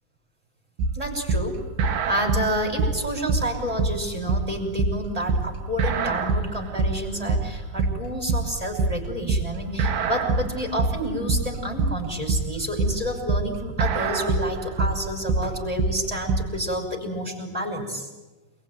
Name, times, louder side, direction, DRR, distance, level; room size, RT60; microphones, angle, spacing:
sound 1, 0.8-16.6, right 3 dB, 85° right, 4.1 m, -25 dB
voice 1, 0.9-1.5 2.1-18.1, equal, 10° right, 3 dB, 5.4 m, -29 dB
28.5 x 21.5 x 9.3 m, 1.1 s
omnidirectional pair, 4.8 m